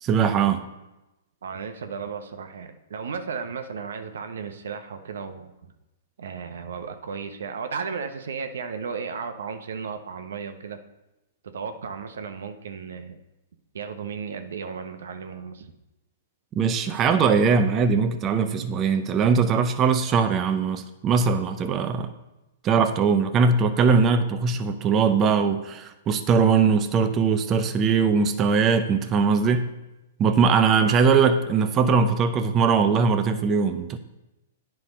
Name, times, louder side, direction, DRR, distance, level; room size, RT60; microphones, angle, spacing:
voice 1, 0.0-0.6 16.6-22.1 22.6-29.7 30.2-34.0, right 5 dB, 25° right, 8 dB, 0.7 m, -21 dB
voice 2, 1.4-5.7 6.2-10.8 11.4-13.2 13.7-15.7 30.4-31.2, right 6 dB, 75° right, 8 dB, 0.9 m, -34 dB
9.7 x 4.6 x 5.3 m, 0.99 s
hypercardioid pair, 120°, 0 cm